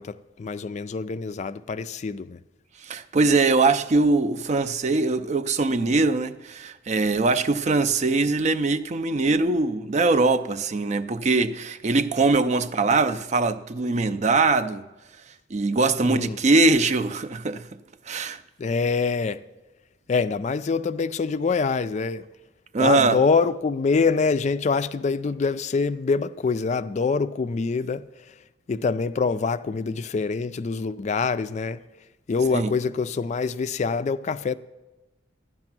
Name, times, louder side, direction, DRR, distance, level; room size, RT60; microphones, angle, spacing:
voice 1, 0.0-2.4 16.0-16.4 18.6-19.4 20.1-22.3 22.8-28.1 28.7-31.8 32.3-34.5, left 4 dB, 40° left, 0.3 m, -25 dB
voice 2, 2.8-14.9 15.5-17.7 18.1-18.4 22.7-23.2 32.5-32.7, right 3 dB, 40° right, 0.4 m, -22 dB
12.0 x 9.7 x 6.0 m
head